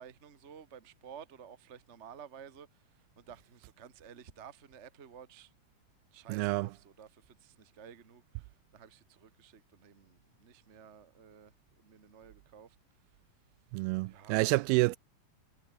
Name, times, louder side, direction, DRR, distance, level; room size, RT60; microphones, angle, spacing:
voice 1, 0.0-5.5 6.1-12.8 13.1-13.2 14.1-14.5, right 7 dB, 40° right, 0.9 m, -53 dB
voice 2, 6.3-6.7 13.7-15.0, right 23 dB, 90° right, 2.5 m, -28 dB
omnidirectional pair, 4.4 m